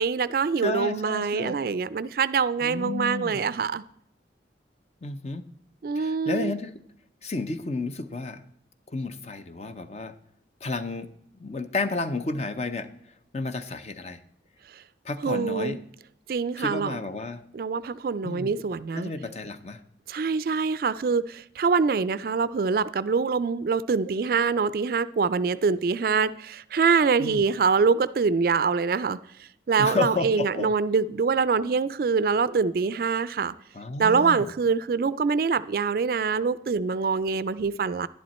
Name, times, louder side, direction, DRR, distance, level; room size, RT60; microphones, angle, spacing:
voice 1, 0.0-3.8 5.8-6.5 15.2-15.8 16.3-17.0 17.5-19.1 20.1-29.2 29.7-33.5 34.0-38.1, right 5 dB, 55° right, 0.3 m, -24 dB
voice 2, 0.6-1.6 2.6-3.4 5.0-5.5 6.0-6.8 7.2-8.4 8.9-10.2 10.6-11.1 11.4-12.9 13.3-14.2 15.0-15.8 16.6-17.4 18.2-18.6 18.9-19.8 27.2-27.4 29.8-30.7 33.7-34.5, left 3 dB, 35° left, 0.6 m, -31 dB
11.0 x 10.5 x 4.2 m
head